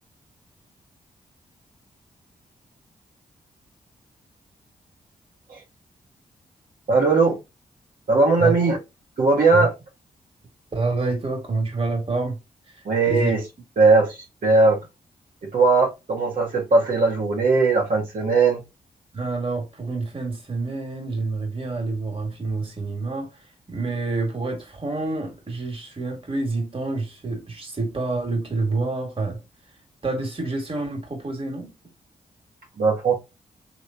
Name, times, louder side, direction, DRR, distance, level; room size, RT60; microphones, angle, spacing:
voice 1, 6.9-7.4 8.1-8.8 9.2-9.7 12.8-13.4 13.8-14.8 15.5-18.6 32.8-33.2, right 3 dB, 65° right, 1.1 m, -19 dB
voice 2, 10.7-12.4 13.1-13.3 19.1-23.3 23.7-29.4 30.0-31.7, right 3 dB, 35° right, 1.7 m, -27 dB
3.2 x 3.1 x 2.6 m
supercardioid pair, 50°, 15 cm